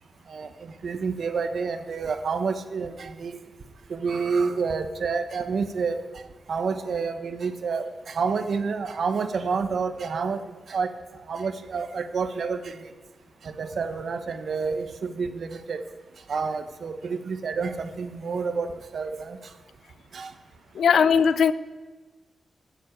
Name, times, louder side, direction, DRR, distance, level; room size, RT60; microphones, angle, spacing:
voice 1, 0.8-3.4 3.9-6.0 6.5-10.4 10.7-10.9 11.3-12.6 13.4-15.8 16.3-19.4 20.1-20.3, right 5 dB, 65° right, 1.1 m, -28 dB
voice 2, 20.7-21.5, left 7 dB, 85° left, 0.6 m, -19 dB
15.0 x 7.7 x 8.4 m
cardioid pair, 95°, 0 cm